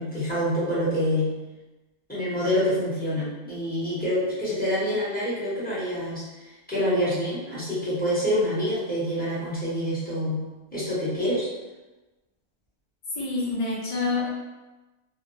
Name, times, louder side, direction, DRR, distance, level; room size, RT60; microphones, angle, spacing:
voice 1, 0.0-1.5 2.1-6.2 6.7-11.5, equal, 10° left, -10 dB, 0.6 m, -26 dB
voice 2, 13.2-14.3, left 3 dB, 45° left, -6 dB, 0.4 m, -27 dB
2.7 x 2.2 x 2.6 m, 1.1 s
omnidirectional pair, 1.6 m